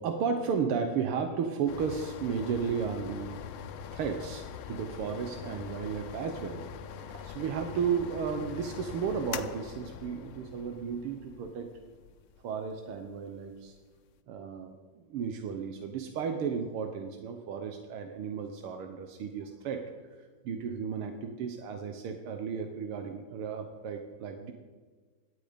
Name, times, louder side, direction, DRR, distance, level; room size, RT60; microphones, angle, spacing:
voice 1, 0.0-3.4 3.9-6.6 7.0-11.7 12.4-13.8 14.3-19.8 20.4-24.5, right 6 dB, 85° right, 6 dB, 1.9 m, -34 dB
sound 1, 1.7-14.1, left 8 dB, 80° left, 1.6 m, -43 dB
17.5 x 12.0 x 5.2 m, 1.4 s
omnidirectional pair, 2.4 m